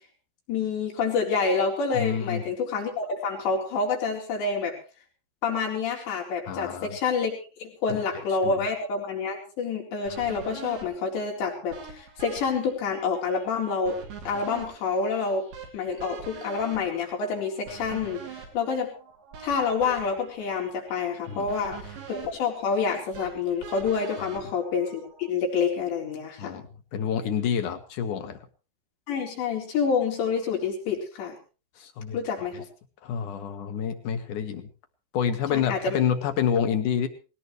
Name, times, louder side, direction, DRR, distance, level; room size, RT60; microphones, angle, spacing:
voice 1, 0.5-4.8 5.4-7.3 7.6-14.0 14.3-15.5 15.7-18.9 19.4-26.5 29.1-31.4 32.1-32.7 35.5-36.0, left 5 dB, 80° left, 0 dB, 6.3 m, -28 dB
voice 2, 1.9-2.4 6.5-7.0 7.9-8.0 8.4-8.7 21.3-21.8 26.4-28.4 31.8-32.2 33.0-34.7 35.1-37.1, left 8 dB, 60° left, 8 dB, 2.7 m, -28 dB
sound 1, 10.1-25.3, right 5 dB, 90° right, 5.5 m, -44 dB
19.5 x 18.0 x 3.3 m, 0.34 s
omnidirectional pair, 4.9 m